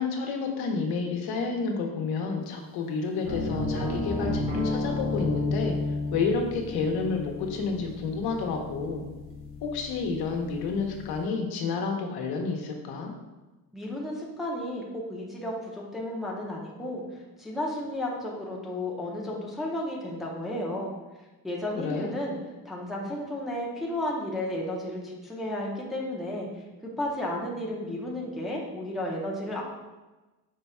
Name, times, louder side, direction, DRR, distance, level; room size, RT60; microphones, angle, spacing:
voice 1, 0.0-5.7 6.1-9.0 9.6-13.1 21.8-22.1, left 4 dB, 80° left, 2 dB, 0.9 m, -30 dB
sound 1, 3.2-11.1, left 2 dB, 35° right, 1.1 m, -32 dB
voice 2, 13.7-17.0 17.4-20.9 21.4-22.4 22.6-26.5 26.8-29.6, left 1 dB, ahead, -4 dB, 0.6 m, -33 dB
5.0 x 2.3 x 4.2 m, 1.1 s
cardioid pair, 135°, 37 cm